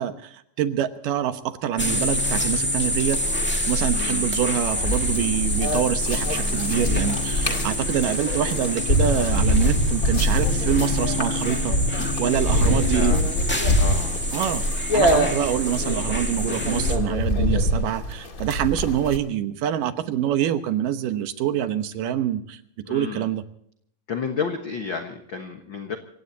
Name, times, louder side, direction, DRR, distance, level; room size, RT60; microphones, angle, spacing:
voice 1, 0.0-3.2 3.7-13.1 14.3-14.7 14.9-22.6 22.9-23.4, right 10 dB, 75° right, 9 dB, 2.7 m, -25 dB
sound 1, 1.8-17.0, left 1 dB, 15° left, 0.4 m, -26 dB
voice 2, 3.9-4.3 12.9-13.2 13.8-14.2 22.8-23.3 24.1-26.0, left 6 dB, 50° left, 5 dB, 1.5 m, -31 dB
sound 2, 4.7-19.2, equal, 30° left, 2.0 m, -25 dB
27.0 x 16.5 x 2.8 m, 0.68 s
omnidirectional pair, 3.9 m